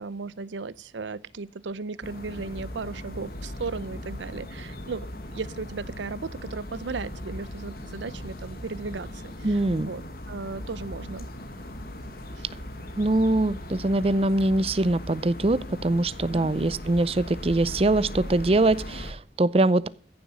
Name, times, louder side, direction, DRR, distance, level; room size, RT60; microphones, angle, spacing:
voice 1, 0.0-5.1 5.3-10.0 10.3-11.3 12.4-12.5 16.3-16.5, right 4 dB, 80° right, 0.6 m, -36 dB
sound 1, 2.0-19.1, left 1 dB, 55° left, 1.6 m, -38 dB
voice 2, 9.4-9.9 13.0-19.9, right 2 dB, 30° right, 0.5 m, -23 dB
15.0 x 7.2 x 6.1 m
head